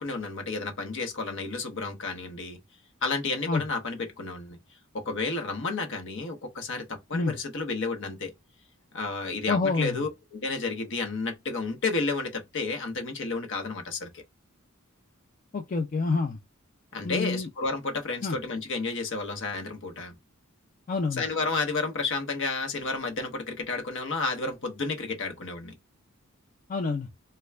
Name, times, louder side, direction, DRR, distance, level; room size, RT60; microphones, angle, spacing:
voice 1, 0.0-2.6 3.0-4.6 4.9-8.3 8.9-14.2 16.9-20.1 21.2-25.7, left 3 dB, 60° left, 0.9 m, -31 dB
voice 2, 9.5-10.0 15.5-16.4 17.0-17.5 18.2-18.4 20.9-21.2 26.7-27.1, left 4 dB, 35° left, 0.4 m, -27 dB
3.2 x 2.2 x 3.3 m
head